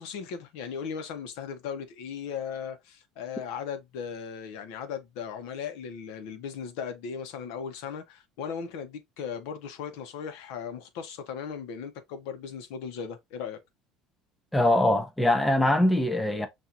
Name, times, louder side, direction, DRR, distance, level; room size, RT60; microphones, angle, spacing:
voice 1, 0.0-13.6, left 7 dB, 80° left, 0.9 m, -37 dB
voice 2, 14.5-16.5, left 1 dB, 5° left, 0.6 m, -22 dB
5.9 x 2.6 x 2.5 m
cardioid pair, 155°, 0 cm